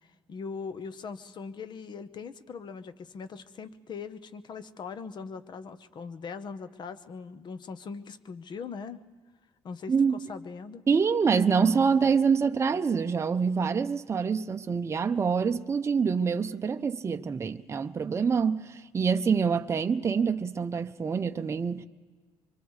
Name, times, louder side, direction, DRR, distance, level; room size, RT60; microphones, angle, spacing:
voice 1, 0.3-9.0 9.6-10.8, left 5 dB, 45° left, 0.9 m, -40 dB
voice 2, 9.9-10.2 10.9-21.9, right 6 dB, 25° right, 0.6 m, -26 dB
25.0 x 24.0 x 4.8 m
cardioid pair, 135°, 10 cm